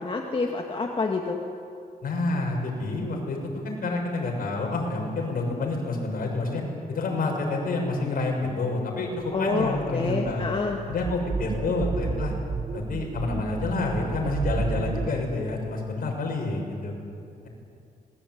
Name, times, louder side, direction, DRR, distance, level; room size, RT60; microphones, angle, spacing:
voice 1, 0.0-1.4 9.3-10.8, left 3 dB, 35° left, 1 dB, 2.1 m, -27 dB
voice 2, 2.0-3.4 3.6-6.6 6.9-10.5 10.9-12.3 12.7-16.9, left 2 dB, 60° left, 0 dB, 7.0 m, -28 dB
sound 1, 9.3-15.1, right 4 dB, 45° right, 1.4 m, -32 dB
26.5 x 21.0 x 9.5 m, 2.5 s
cardioid pair, 120°, 16 cm